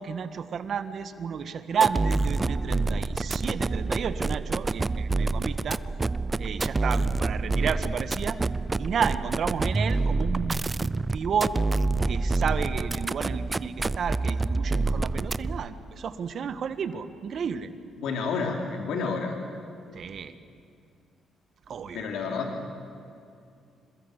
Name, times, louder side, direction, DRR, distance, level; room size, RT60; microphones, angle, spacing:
voice 1, 0.0-5.8 6.4-8.4 8.8-11.6 12.0-17.7 19.9-20.3 21.7-22.1, right 7 dB, 60° right, 10 dB, 1.5 m, -31 dB
sound 1, 1.7-15.7, right 3 dB, 25° right, 0.5 m, -27 dB
voice 2, 18.0-19.3 21.9-22.5, left 4 dB, 80° left, 2 dB, 2.9 m, -29 dB
26.5 x 21.5 x 8.2 m, 2.5 s
cardioid pair, 90°, 0 cm